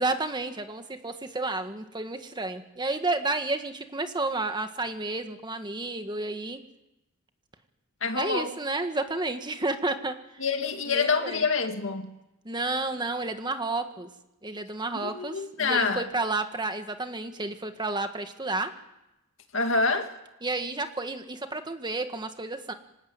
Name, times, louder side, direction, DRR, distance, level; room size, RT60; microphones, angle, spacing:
voice 1, 0.0-6.6 8.1-10.2 10.9-11.5 12.4-14.1 14.4-18.7 20.4-22.7, right 2 dB, 20° right, 1.6 m, -31 dB
voice 2, 8.0-8.5 10.4-12.1 14.9-16.1 19.5-20.1, left 4 dB, 65° left, 2.2 m, -26 dB
26.0 x 17.5 x 9.0 m
head